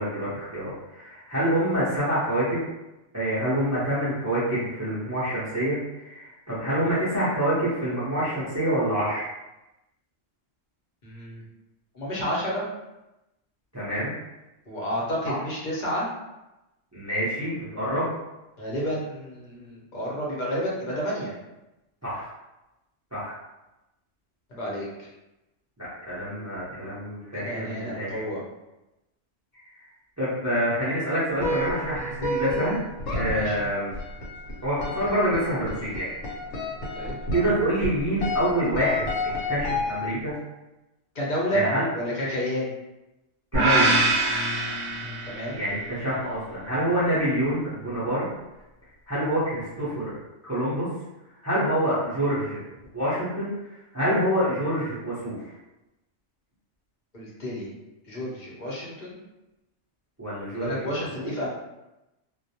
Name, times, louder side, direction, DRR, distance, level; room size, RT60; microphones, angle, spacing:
voice 1, 0.0-2.7 3.1-9.3 13.7-14.1 15.2-15.3 16.9-18.1 22.0-22.3 23.1-23.3 25.8-28.2 30.2-32.8 33.1-33.9 34.6-36.1 37.3-39.1 39.5-40.3 41.5-41.8 43.5-43.9 45.6-48.2 49.1-50.2 50.4-50.9 51.4-52.6 52.9-53.5 53.9-55.4 60.2-61.3, right 1 dB, 20° right, -10 dB, 0.5 m, -26 dB
voice 2, 11.0-11.4 11.9-12.6 14.7-16.1 18.6-21.3 24.5-25.1 27.3-28.4 33.3-33.7 37.0-37.1 41.1-41.6 41.9-42.7 45.0-45.6 57.1-57.7 58.0-59.1 60.5-61.5, equal, 45° left, -5 dB, 0.7 m, -30 dB
sound 1, 31.4-40.4, left 2 dB, 85° left, 1.0 m, -31 dB
sound 2, 43.5-45.7, right 2 dB, 75° right, 0.9 m, -23 dB
2.3 x 2.0 x 2.7 m, 0.98 s
omnidirectional pair, 1.3 m